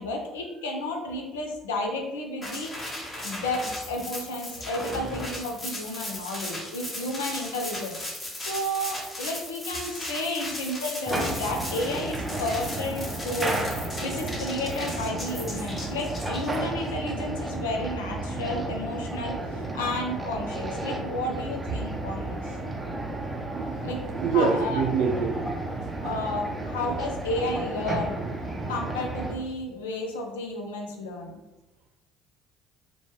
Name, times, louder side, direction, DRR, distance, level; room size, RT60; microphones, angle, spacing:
voice 1, 0.0-8.0 8.4-13.6 14.0-22.6 23.8-24.0 24.3-24.8 26.0-28.2 28.7-31.4, left 1 dB, 80° left, 2 dB, 0.5 m, -32 dB
sound 1, 2.4-16.9, left 1 dB, 30° left, 1.0 m, -37 dB
sound 2, 11.1-29.3, right 2 dB, 15° right, 0.5 m, -32 dB
voice 2, 24.1-25.4, right 5 dB, 65° right, 2 dB, 0.5 m, -26 dB
3.0 x 2.2 x 3.0 m, 1.0 s
figure-of-eight pair, 55°, 0 cm